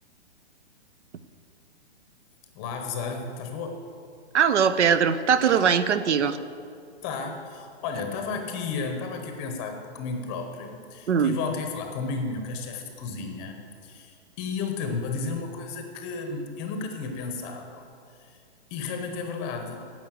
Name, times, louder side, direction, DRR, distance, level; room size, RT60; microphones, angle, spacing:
voice 1, 2.6-3.8 7.0-17.9 18.2-18.4 18.7-19.8, left 4 dB, 15° left, 5 dB, 0.7 m, -33 dB
voice 2, 4.3-6.4 11.1-11.4, right 7 dB, 85° right, 13 dB, 0.8 m, -21 dB
10.5 x 7.5 x 7.5 m, 2.4 s
hypercardioid pair, 160°, 34 cm